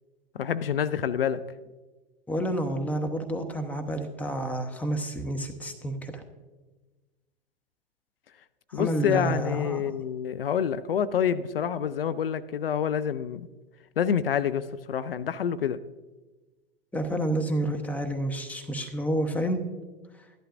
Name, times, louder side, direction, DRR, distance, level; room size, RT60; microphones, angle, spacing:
voice 1, 0.4-1.4 8.7-13.5 14.0-15.8, left 8 dB, 75° left, 14 dB, 0.5 m, -27 dB
voice 2, 2.3-6.2 8.7-9.8 16.9-19.6, right 1 dB, 5° left, 6 dB, 0.9 m, -29 dB
13.5 x 11.5 x 2.5 m, 1.2 s
figure-of-eight pair, 95°, 29 cm